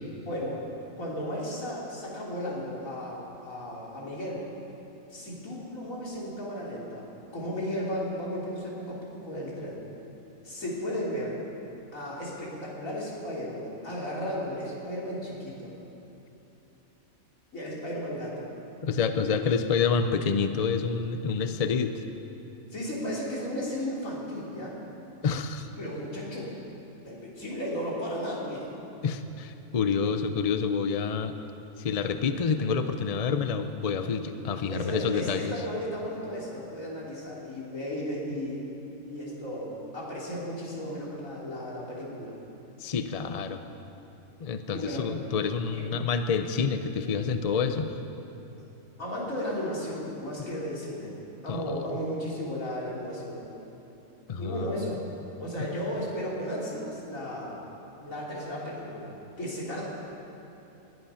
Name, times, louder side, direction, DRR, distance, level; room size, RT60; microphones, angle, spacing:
voice 1, 0.3-0.7 1.0-4.5 5.1-7.1 7.3-9.8 10.4-11.4 11.9-15.7 17.5-18.5 22.7-24.8 25.8-26.5 27.1-28.7 34.7-38.7 39.1-42.3 44.7-45.1 45.7-45.9 49.0-51.2 51.4-53.5 54.4-55.0 55.4-57.6 57.9-59.8, equal, 75° left, -5 dB, 3.7 m, -34 dB
voice 2, 18.8-22.0 25.2-25.7 29.0-31.3 31.8-35.5 42.8-43.6 44.4-47.9 51.5-51.9 54.3-55.0, left 5 dB, 40° left, 8 dB, 0.6 m, -28 dB
20.5 x 11.0 x 5.7 m, 2.9 s
omnidirectional pair, 1.4 m